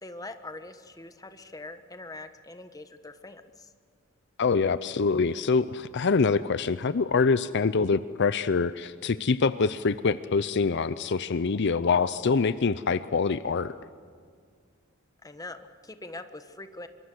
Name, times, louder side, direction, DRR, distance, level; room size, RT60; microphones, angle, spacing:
voice 1, 0.0-3.7 15.2-16.9, left 2 dB, 15° left, 9 dB, 1.3 m, -43 dB
voice 2, 4.4-13.7, left 4 dB, 55° left, 14 dB, 0.5 m, -25 dB
25.0 x 23.0 x 7.8 m, 2.1 s
head